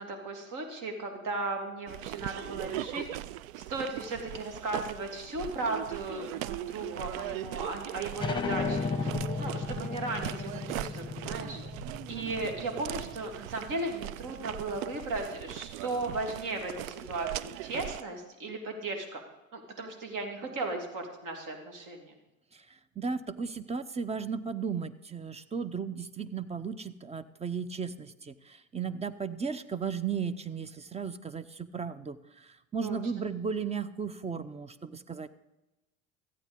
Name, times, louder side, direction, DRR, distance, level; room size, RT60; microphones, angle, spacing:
voice 1, 0.0-3.0 3.7-9.1 9.4-11.6 12.1-19.2 19.5-22.1 32.8-33.0, right 2 dB, 50° right, 4 dB, 3.0 m, -36 dB
sound 1, 1.9-18.0, right 15 dB, 75° right, 0.6 m, -40 dB
sound 2, 8.2-13.4, left 4 dB, 10° left, 1.4 m, -35 dB
voice 2, 22.5-35.3, right 6 dB, 15° right, 14 dB, 0.7 m, -35 dB
14.0 x 8.6 x 5.2 m, 1.0 s
hypercardioid pair, 75°, 41 cm